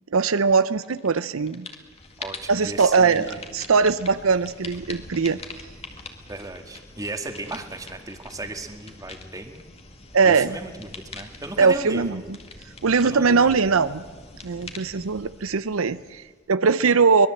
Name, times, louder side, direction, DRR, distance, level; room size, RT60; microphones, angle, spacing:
voice 1, 0.1-1.7 2.5-5.4 10.1-10.6 11.6-12.4 12.8-14.0 14.4-17.3, right 5 dB, 85° right, 14 dB, 0.7 m, -21 dB
sound 1, 0.8-1.2 1.5-16.5, left 3 dB, 30° left, 2.0 m, -43 dB
voice 2, 2.2-3.4 6.3-9.7 10.2-12.3 13.0-13.6, right 2 dB, 15° right, 5 dB, 1.9 m, -36 dB
24.0 x 20.5 x 7.8 m, 1.4 s
head